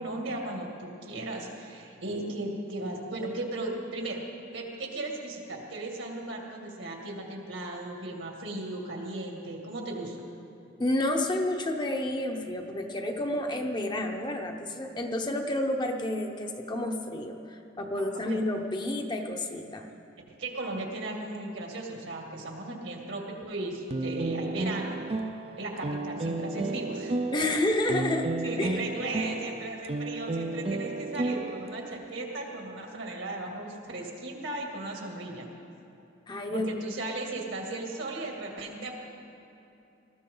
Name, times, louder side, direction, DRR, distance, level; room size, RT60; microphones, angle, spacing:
voice 1, 0.0-4.2 4.5-10.2 17.9-18.4 20.3-25.0 25.6-27.5 28.4-35.5 36.5-38.9, right 2 dB, 75° right, 0 dB, 2.4 m, -36 dB
voice 2, 10.8-19.9 27.3-28.3 28.6-28.9 36.3-36.7 37.0-37.1, left 1 dB, 25° left, 3 dB, 0.8 m, -30 dB
sound 1, 23.9-32.0, right 2 dB, 30° right, 0.5 m, -32 dB
19.5 x 14.0 x 3.9 m, 2.8 s
head